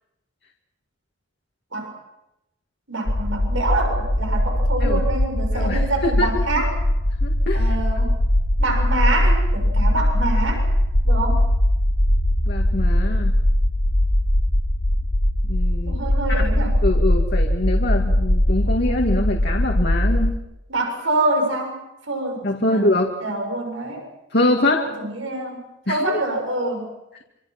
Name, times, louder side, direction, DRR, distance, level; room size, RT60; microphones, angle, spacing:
voice 1, 2.9-6.7 7.5-8.1 8.6-10.7 11.0-11.4 15.9-16.8 20.7-21.8 22.1-22.9 23.2-24.0 24.8-25.6 25.9-26.9, right 2 dB, 90° right, 3 dB, 6.8 m, -26 dB
sound 1, 3.1-20.4, left 1 dB, 75° left, 1.7 m, -20 dB
voice 2, 5.5-6.3 7.2-7.8 12.5-13.4 15.5-16.0 16.3-16.4 16.8-20.3 22.4-23.1 24.3-24.9 25.9-26.2, left 1 dB, 55° left, 1 dB, 2.2 m, -23 dB
26.5 x 26.0 x 6.1 m, 0.90 s
head